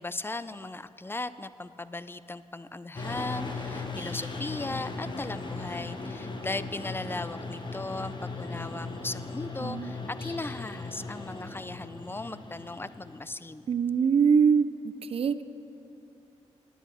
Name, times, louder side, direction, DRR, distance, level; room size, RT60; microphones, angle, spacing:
voice 1, 0.0-13.6, left 2 dB, 20° left, 15 dB, 0.5 m, -37 dB
sound 1, 3.0-13.4, left 3 dB, 40° left, 1.5 m, -38 dB
voice 2, 9.6-9.9 13.7-14.7 15.1-15.4, right 6 dB, 50° right, 13 dB, 0.5 m, -23 dB
10.0 x 8.6 x 7.6 m, 2.7 s
cardioid pair, 55°, 12 cm